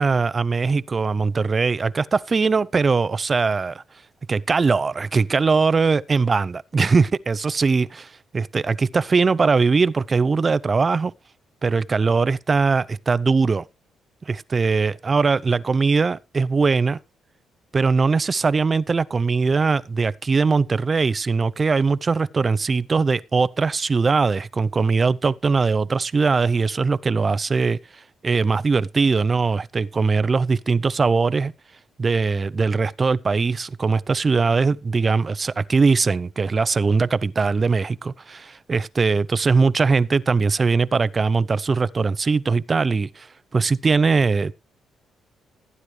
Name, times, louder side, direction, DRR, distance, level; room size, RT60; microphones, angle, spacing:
voice 1, 0.0-3.8 4.3-11.1 11.6-13.6 14.3-17.0 17.7-27.8 28.2-31.5 32.0-43.3 43.5-44.5, right 4 dB, 35° right, 0.6 m, -21 dB
15.0 x 9.7 x 3.3 m
cardioid pair, 90°, 0 cm